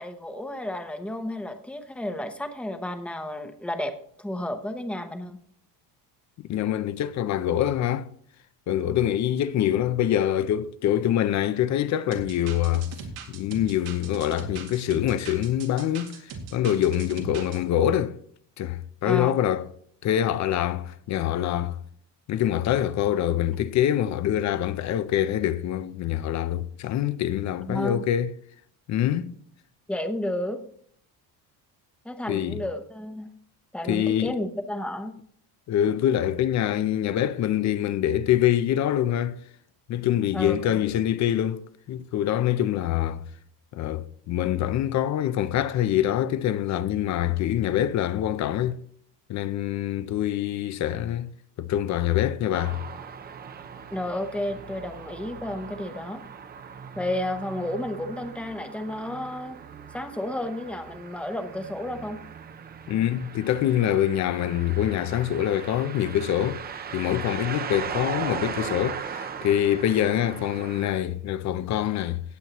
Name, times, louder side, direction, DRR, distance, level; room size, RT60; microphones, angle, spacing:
voice 1, 0.0-3.9 4.2-5.4 19.0-19.3 27.6-28.0 29.9-30.6 32.0-33.3 33.7-35.1 40.3-40.8 53.9-56.2 57.0-59.6 59.9-62.2, left 1 dB, 5° left, 0.8 m, -32 dB
voice 2, 6.4-8.1 8.7-12.9 13.3-18.2 18.6-19.7 20.0-21.8 22.3-28.3 28.9-29.4 32.3-32.6 33.9-34.4 35.7-39.4 39.9-43.2 43.7-48.8 49.3-51.3 51.6-52.8 62.9-66.6 66.9-72.2, left 11 dB, 45° left, 0.6 m, -25 dB
sound 1, 12.1-17.6, right 5 dB, 90° right, 2.3 m, -40 dB
sound 2, 52.5-70.9, right 7 dB, 25° right, 0.5 m, -38 dB
18.0 x 8.1 x 3.0 m
cardioid pair, 175°, 39 cm